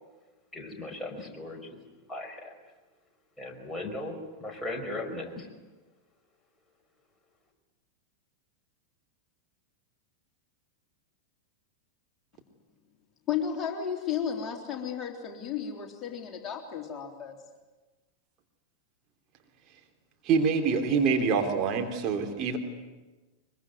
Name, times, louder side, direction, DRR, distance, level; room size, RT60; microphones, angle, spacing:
voice 1, 0.5-1.8 2.1-2.5 3.4-5.5, left 2 dB, 5° left, 1 dB, 5.4 m, -37 dB
voice 2, 13.3-17.4, left 8 dB, 25° left, 1 dB, 3.7 m, -33 dB
voice 3, 20.2-22.6, right 5 dB, 35° right, 2 dB, 3.2 m, -25 dB
24.0 x 23.0 x 9.6 m, 1.2 s
figure-of-eight pair, 90°, 0 cm